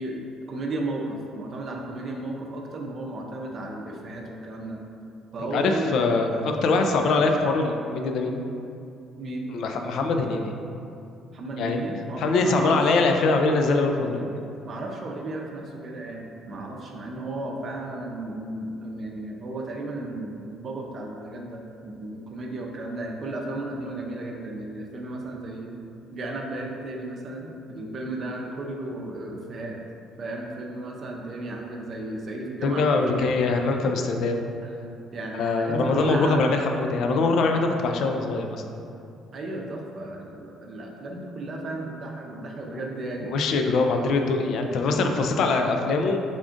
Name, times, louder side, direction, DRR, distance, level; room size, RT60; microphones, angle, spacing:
voice 1, 0.0-4.8 5.3-6.6 9.2-9.5 11.3-13.0 14.6-25.7 26.1-29.8 30.2-33.3 34.6-34.7 35.1-36.5 39.3-43.3, right 2 dB, 50° right, 0 dB, 0.5 m, -34 dB
voice 2, 5.5-8.4 9.5-10.6 11.6-11.8 12.2-14.4 32.6-34.5 35.4-38.6 42.7-42.8 43.2-46.2, left 3 dB, 65° left, 4 dB, 0.3 m, -23 dB
3.6 x 2.4 x 3.7 m, 2.6 s
hypercardioid pair, 55°, 0 cm